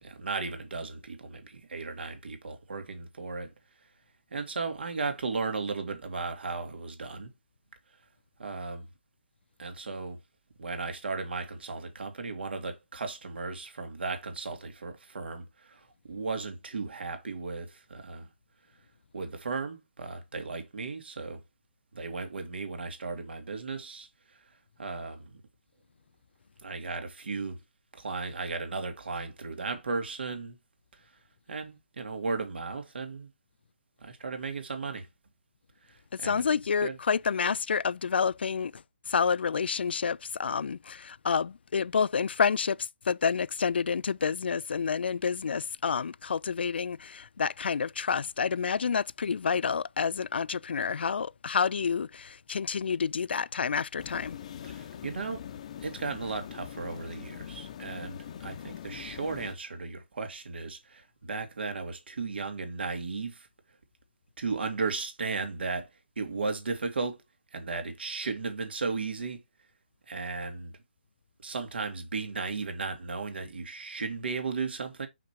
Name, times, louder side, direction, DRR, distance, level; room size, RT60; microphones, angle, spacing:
voice 1, 0.0-3.5 4.3-7.3 8.4-8.9 9.6-10.2 10.6-18.3 19.1-21.4 21.9-24.1 24.8-25.4 26.6-27.6 27.9-30.6 31.5-33.3 34.0-35.1 35.9-36.4 36.8-37.0 54.6-55.4 55.8-63.5 64.4-65.9 66.2-67.2 67.5-69.4 70.1-70.7 71.4-75.1, right 4 dB, 70° right, 2.3 m, -35 dB
voice 2, 36.2-38.8 39.1-54.4, left 6 dB, 70° left, 0.3 m, -29 dB
sound 1, 54.0-59.5, left 9 dB, 35° left, 0.8 m, -43 dB
5.8 x 5.0 x 4.3 m
hypercardioid pair, 165°, 6 cm